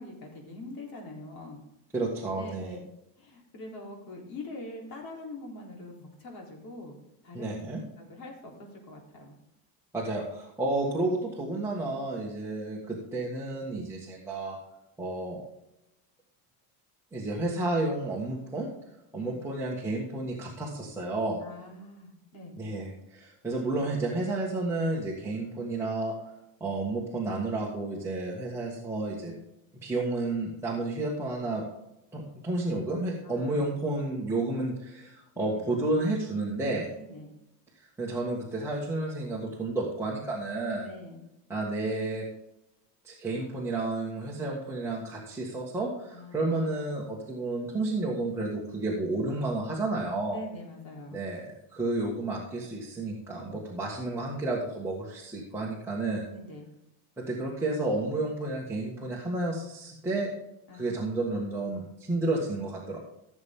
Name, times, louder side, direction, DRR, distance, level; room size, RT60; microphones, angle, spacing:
voice 1, 0.0-1.6 2.3-2.8 3.2-7.0 7.2-7.5 8.0-9.4 19.1-19.4 21.4-22.6 33.2-33.7 35.4-35.8 36.9-37.3 40.8-41.2 46.1-46.7 50.3-51.2 56.3-56.7 60.7-61.1, left 2 dB, 55° left, 0 dB, 3.8 m, -44 dB
voice 2, 1.9-2.8 7.3-7.8 9.9-14.6 15.0-15.4 17.1-18.7 19.1-21.4 22.6-26.2 26.6-29.3 29.8-31.6 32.1-36.9 37.8-40.9 41.5-42.3 43.0-50.4 51.1-56.2 57.2-60.3 60.7-63.0, right 2 dB, 5° right, -6 dB, 1.7 m, -31 dB
16.0 x 7.1 x 3.7 m, 0.85 s
cardioid pair, 160°, 44 cm